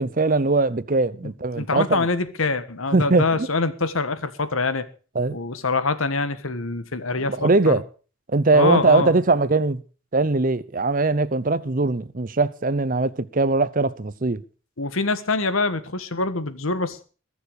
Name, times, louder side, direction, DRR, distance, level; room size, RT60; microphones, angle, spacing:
voice 1, 0.0-2.1 2.9-3.5 5.1-5.4 7.3-7.8 8.3-9.8 10.1-14.4, right 3 dB, 40° right, 0.8 m, -21 dB
voice 2, 1.2-4.9 5.3-7.7 8.5-9.1 14.8-17.0, left 3 dB, 85° left, 1.5 m, -25 dB
21.5 x 7.1 x 6.5 m
head